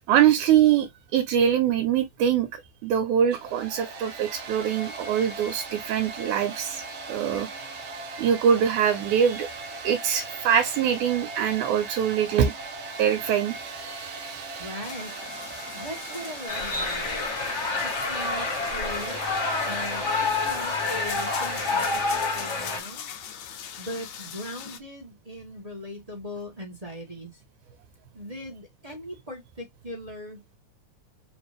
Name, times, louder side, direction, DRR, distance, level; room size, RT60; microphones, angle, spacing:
voice 1, 0.1-6.8 7.1-7.5 8.2-9.5 9.8-12.5 13.0-13.6, right 9 dB, 80° right, 2.2 m, -23 dB
Domestic sounds home sounds, 3.2-22.8, right 3 dB, 55° right, 1.5 m, -39 dB
voice 2, 14.6-15.2 15.7-17.3 17.8-19.2 19.6-23.1 23.8-27.4 28.1-30.4, left 1 dB, 30° right, 0.6 m, -39 dB
sound 1, 14.8-24.8, left 9 dB, 70° left, 1.7 m, -40 dB
sound 2, 16.5-22.8, left 3 dB, 40° left, 1.0 m, -28 dB
5.0 x 2.6 x 3.3 m
omnidirectional pair, 3.5 m